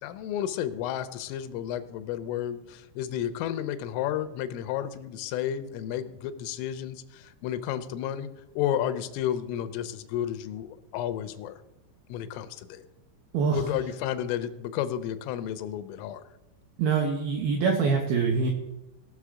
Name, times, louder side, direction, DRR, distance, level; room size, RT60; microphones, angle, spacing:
voice 1, 0.0-8.3 8.6-11.5 12.1-12.9 13.5-16.2, left 10 dB, 90° left, 12 dB, 3.2 m, -32 dB
voice 2, 13.3-13.7 16.8-18.5, right 5 dB, 85° right, 2 dB, 2.1 m, -24 dB
18.0 x 6.3 x 4.9 m, 0.96 s
omnidirectional pair, 5.7 m